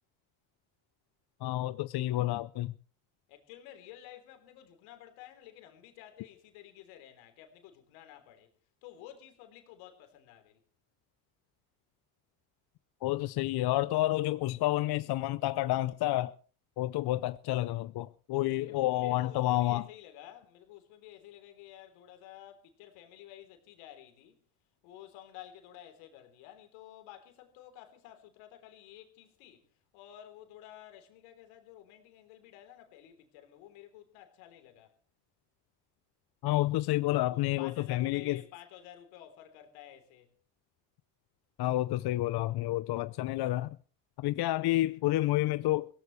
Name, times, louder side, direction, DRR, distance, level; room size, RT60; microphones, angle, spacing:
voice 1, 1.4-2.7 13.0-16.3 16.8-19.8 36.4-38.4 41.6-43.7 44.2-45.9, left 16 dB, 55° left, 0.7 m, -29 dB
voice 2, 3.3-8.5 8.8-10.6 18.4-24.4 24.8-29.7 29.9-34.9 37.0-40.3, left 12 dB, 80° left, 3.5 m, -52 dB
22.5 x 17.0 x 3.2 m
supercardioid pair, 75°, 47 cm